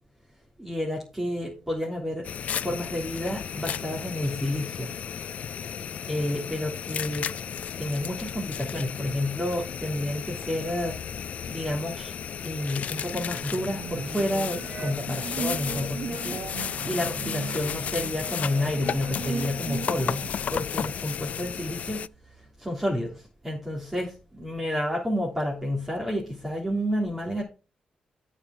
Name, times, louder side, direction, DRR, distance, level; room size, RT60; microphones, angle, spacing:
voice 1, 0.6-2.3 2.5-4.9 6.1-7.3 7.8-11.0 11.5-12.1 12.4-20.2 20.5-22.1 22.6-27.4, left 1 dB, 10° right, -4 dB, 3.5 m, -30 dB
sound 1, 2.2-22.1, left 8 dB, 65° left, 0.3 m, -34 dB
sound 2, 13.1-20.3, right 6 dB, 70° right, 0.7 m, -37 dB
8.8 x 5.5 x 6.0 m, 0.33 s
cardioid pair, 75°, 3 cm